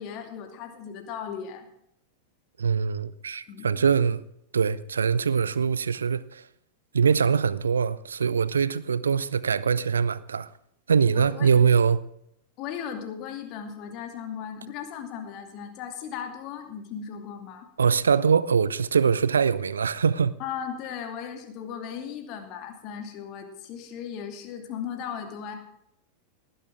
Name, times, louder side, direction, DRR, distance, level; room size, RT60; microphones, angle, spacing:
voice 1, 0.0-1.7 3.5-3.8 11.1-11.5 12.6-17.7 20.4-25.6, left 8 dB, 40° left, 2.5 m, -37 dB
voice 2, 2.6-4.2 4.5-6.4 6.9-10.5 10.9-12.0 17.8-20.4, right 6 dB, 70° right, 0.6 m, -23 dB
18.5 x 11.0 x 3.6 m
figure-of-eight pair, 90°, 0 cm